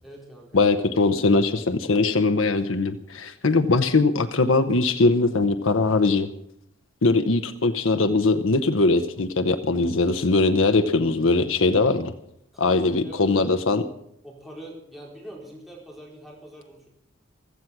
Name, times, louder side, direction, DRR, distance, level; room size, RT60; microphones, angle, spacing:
voice 1, 0.0-1.3 12.5-13.4 14.2-16.9, right 1 dB, ahead, -4 dB, 4.6 m, -43 dB
voice 2, 0.5-6.3 7.0-12.1 12.6-13.8, left 3 dB, 70° left, 7 dB, 0.8 m, -21 dB
15.5 x 14.0 x 6.0 m, 0.74 s
head